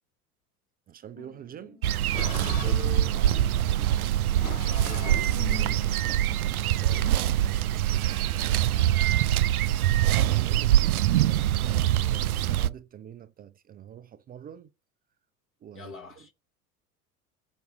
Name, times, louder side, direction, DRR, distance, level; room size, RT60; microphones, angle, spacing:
voice 1, 0.9-1.8 10.4-14.7 15.6-16.3, right 9 dB, 20° right, 0.5 m, -46 dB
sound 1, 1.1-7.7, left 7 dB, 75° left, 3.4 m, -41 dB
sound 2, 1.8-12.7, right 12 dB, 75° right, 0.5 m, -24 dB
voice 2, 2.2-6.0 6.8-7.3 15.7-16.3, left 4 dB, 30° left, 1.4 m, -47 dB
6.7 x 6.1 x 3.9 m
figure-of-eight pair, 75°, 45 cm